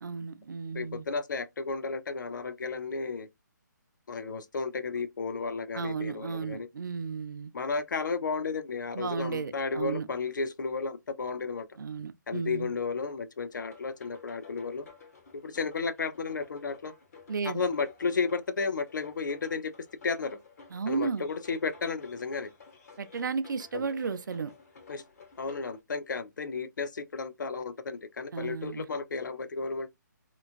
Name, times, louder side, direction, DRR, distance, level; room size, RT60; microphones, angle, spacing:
voice 1, 0.0-1.1 5.7-7.5 8.9-10.1 11.8-12.7 17.3-17.6 20.7-21.3 23.0-24.5 28.3-28.9, right 5 dB, 75° right, 0.5 m, -34 dB
voice 2, 0.7-3.3 4.1-6.7 7.5-11.7 12.3-14.9 15.4-16.9 17.5-19.7 20.0-20.4 20.9-22.5 23.7-23.9 24.9-25.0 25.4-29.9, left 4 dB, 75° left, 0.6 m, -33 dB
sound 1, 13.5-25.8, left 5 dB, 55° left, 1.1 m, -53 dB
3.0 x 2.4 x 2.4 m
hypercardioid pair, 160°, 10 cm